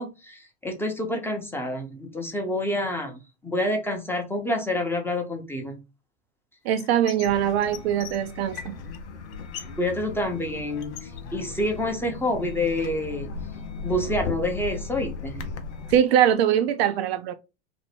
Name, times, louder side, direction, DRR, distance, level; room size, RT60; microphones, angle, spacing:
voice 1, 0.0-5.8 9.8-13.3 13.8-15.4, left 1 dB, 5° left, 0.6 m, -28 dB
voice 2, 6.6-8.8 15.9-17.3, right 10 dB, 65° right, 0.5 m, -22 dB
sound 1, 6.8-7.3 7.6-9.0 9.3-9.8 10.1-11.9 12.3-13.1, left 9 dB, 60° left, 0.8 m, -42 dB
sound 2, 7.2-16.0, left 4 dB, 90° left, 0.6 m, -37 dB
2.6 x 2.1 x 3.3 m
hypercardioid pair, 90°, 34 cm